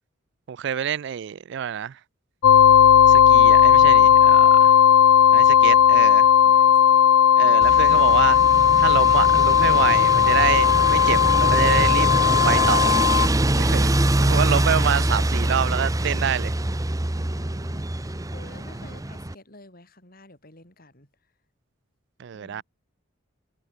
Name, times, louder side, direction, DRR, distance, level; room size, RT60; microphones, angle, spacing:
voice 1, 0.5-2.0 3.1-4.7 5.3-6.2 7.3-8.4 8.8-12.1 12.4-13.0 13.6-13.9 14.2-16.5 22.2-22.6, right 8 dB, 55° right, 0.3 m, -27 dB
sound 1, 2.4-13.3, left 9 dB, 85° left, 0.4 m, -16 dB
voice 2, 5.6-5.9 6.4-7.6 17.2-21.3 22.3-22.6, left 1 dB, 45° left, 5.9 m, -50 dB
sound 2, 7.6-19.3, right 1 dB, 15° right, 0.8 m, -24 dB
head